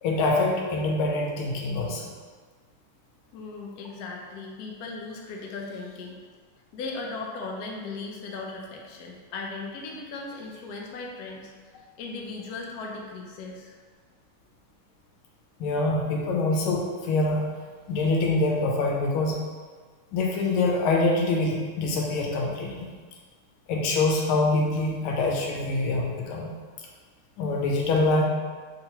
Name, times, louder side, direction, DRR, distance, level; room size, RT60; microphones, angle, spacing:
voice 1, 0.0-2.1 15.6-17.5 17.9-19.4 20.1-22.9 23.7-26.5 27.4-28.2, left 2 dB, 85° left, -1 dB, 1.6 m, -25 dB
voice 2, 3.3-6.2 6.7-11.5 12.0-13.7, left 3 dB, 70° left, -1 dB, 0.9 m, -37 dB
3.8 x 2.8 x 4.4 m, 1.5 s
omnidirectional pair, 2.3 m